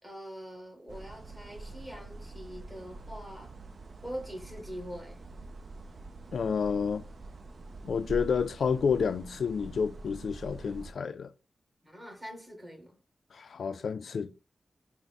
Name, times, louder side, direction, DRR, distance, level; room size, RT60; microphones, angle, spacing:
voice 1, 0.0-3.6 4.0-5.2 11.8-13.0, equal, 20° right, 1.7 m, -43 dB
sound 1, 0.9-10.9, right 2 dB, 60° right, 0.5 m, -45 dB
voice 2, 6.3-7.0 7.8-11.3 13.3-14.3, left 6 dB, 85° left, 0.3 m, -30 dB
4.5 x 2.0 x 4.0 m
wide cardioid pair, 80°, 0 cm